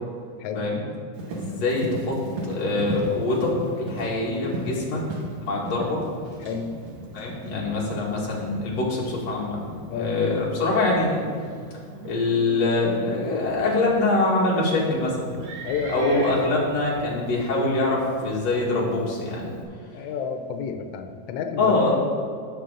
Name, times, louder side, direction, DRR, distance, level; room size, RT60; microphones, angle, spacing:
Livestock farm animals working animals, 1.1-19.6, right 1 dB, 65° right, 3.0 m, -38 dB
voice 1, 1.3-5.0 5.5-6.0 7.1-9.6 9.9-11.2 12.0-15.3 15.9-19.5 21.6-21.9, left 2 dB, 55° left, -5 dB, 3.1 m, -24 dB
voice 2, 15.3-16.1 19.9-21.8, left 6 dB, 85° left, 6 dB, 1.4 m, -31 dB
16.5 x 6.5 x 3.8 m, 2.3 s
omnidirectional pair, 3.8 m